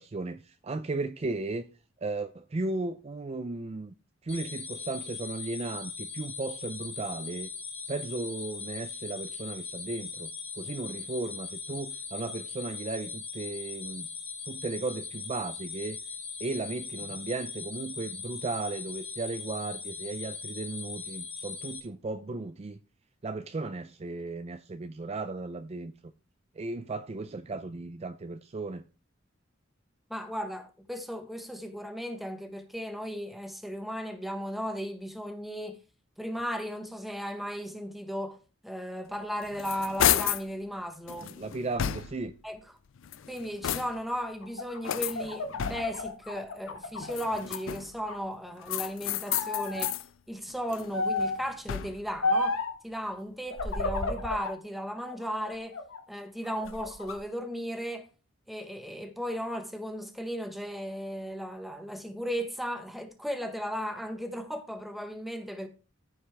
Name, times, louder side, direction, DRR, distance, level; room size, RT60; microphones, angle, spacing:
voice 1, 0.0-1.6 2.0-3.9 4.2-7.5 7.9-10.3 10.6-14.1 14.5-16.0 16.4-22.8 23.2-25.9 26.6-28.8 41.2-42.3, right 3 dB, 30° right, 0.5 m, -35 dB
sound 1, 4.3-21.8, left 5 dB, 25° left, 3.4 m, -40 dB
voice 2, 30.1-35.8 36.2-41.4 42.4-42.6 43.3-50.0 50.3-55.8 56.1-58.1 58.5-65.7, equal, ahead, 1.2 m, -36 dB
sound 2, 39.2-40.5 41.1-42.4 43.0-44.2 44.8-46.1 47.0-48.0 48.7-50.1 50.5-52.1, left 10 dB, 70° left, 0.4 m, -32 dB
sound 3, 44.4-47.6 48.0-48.9 49.3-49.9 50.9-51.5 52.2-52.8 53.5-54.6 55.0-56.0 56.5-57.2, left 2 dB, 90° left, 1.5 m, -32 dB
14.5 x 5.5 x 3.4 m
head